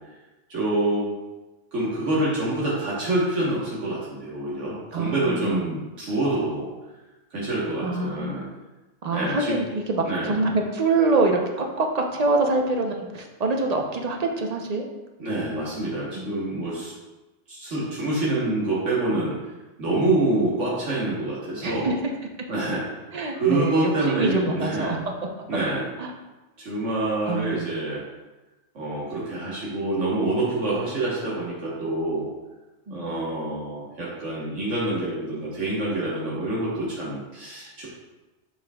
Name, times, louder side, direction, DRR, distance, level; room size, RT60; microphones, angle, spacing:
voice 1, 0.5-1.1 1.7-6.7 7.3-8.5 9.1-9.6 10.0-10.3 15.2-16.9 17.5-19.3 19.8-21.9 22.5-22.8 23.3-25.0 25.5-25.9 26.6-28.0 28.7-32.3 32.9-37.9, right 2 dB, 80° right, -7 dB, 1.6 m, -26 dB
voice 2, 4.9-5.8 7.8-8.5 9.0-14.9 16.1-16.6 21.6-21.9 23.1-25.1 26.0-26.1 27.2-27.8 32.9-33.2, right 3 dB, 40° right, 2 dB, 0.7 m, -25 dB
7.1 x 6.3 x 2.3 m, 1.1 s
omnidirectional pair, 1.2 m